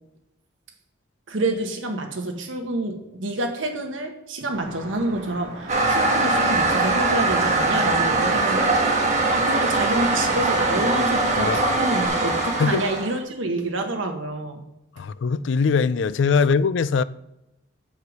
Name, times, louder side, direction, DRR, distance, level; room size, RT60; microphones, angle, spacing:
voice 1, 1.3-9.0 9.3-14.6, right 2 dB, 75° right, 1.3 m, -28 dB
sound 1, 4.5-12.1, right 2 dB, 55° right, 1.6 m, -38 dB
Toilet flush, 5.7-13.2, right 2 dB, 35° right, 1.5 m, -21 dB
voice 2, 11.4-11.7 12.6-12.8 15.0-17.0, left 5 dB, 65° left, 0.4 m, -21 dB
7.9 x 5.4 x 5.2 m
head